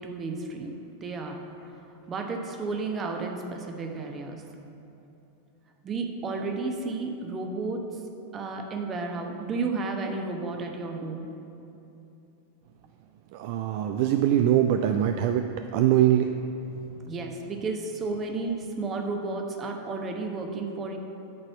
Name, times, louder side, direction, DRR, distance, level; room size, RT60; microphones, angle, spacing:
voice 1, 0.0-1.8 2.1-4.4 5.8-7.9 8.3-11.3 13.8-13.9 17.1-21.0, right 3 dB, 25° right, 3 dB, 0.9 m, -32 dB
voice 2, 13.3-15.5 15.7-16.3, right 11 dB, 50° right, 7 dB, 0.3 m, -22 dB
8.7 x 4.2 x 7.0 m, 2.9 s
figure-of-eight pair, 90°, 0 cm